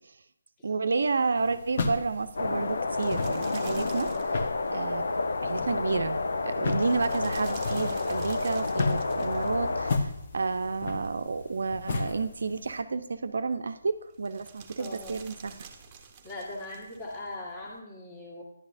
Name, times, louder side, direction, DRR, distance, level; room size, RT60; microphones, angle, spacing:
voice 1, 0.6-4.1 4.7-5.0 5.4-15.6, right 4 dB, 60° right, 10 dB, 0.6 m, -30 dB
sound 1, 0.8-17.8, right 6 dB, 20° right, 0.9 m, -51 dB
sound 2, 1.4-12.8, left 3 dB, 45° left, 1.0 m, -35 dB
sound 3, 2.4-10.0, left 3 dB, 65° left, 0.6 m, -30 dB
voice 2, 14.8-15.2 16.2-18.4, left 2 dB, 20° left, -3 dB, 1.8 m, -40 dB
11.0 x 9.7 x 2.7 m, 0.79 s
figure-of-eight pair, 150°, 0 cm